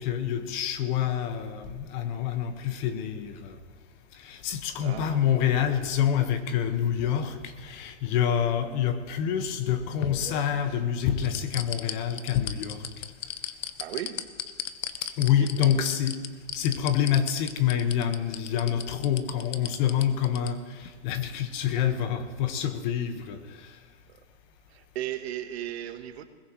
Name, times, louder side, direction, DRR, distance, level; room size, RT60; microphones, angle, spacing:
voice 1, 0.0-3.6 4.1-13.1 15.2-16.2 16.5-23.8, left 9 dB, 40° left, 8 dB, 1.5 m, -27 dB
voice 2, 4.8-5.3 13.8-14.3 15.4-15.9 24.7-26.2, right 12 dB, 55° right, 9 dB, 1.4 m, -36 dB
sound 1, 9.5-10.8 11.2-20.5 20.8-20.9, left 9 dB, 75° left, 1.2 m, -35 dB
21.0 x 20.5 x 3.2 m, 1.5 s
hypercardioid pair, 135°, 38 cm